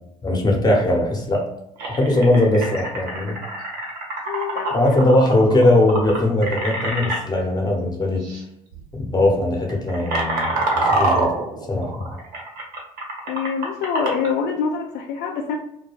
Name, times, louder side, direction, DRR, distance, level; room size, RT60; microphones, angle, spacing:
voice 1, 0.2-1.5 1.9-3.4 4.7-8.3 8.9-11.3 11.7-12.1, left 1 dB, 20° left, 1 dB, 0.9 m, -20 dB
sound 1, 1.8-7.2 8.2-8.4 8.7-9.0 9.5-14.3, right 2 dB, 65° right, 1.0 m, -26 dB
voice 2, 4.3-4.8 13.3-15.6, left 6 dB, 65° left, 1 dB, 0.4 m, -25 dB
2.2 x 2.2 x 3.0 m, 0.80 s
hypercardioid pair, 65°, 18 cm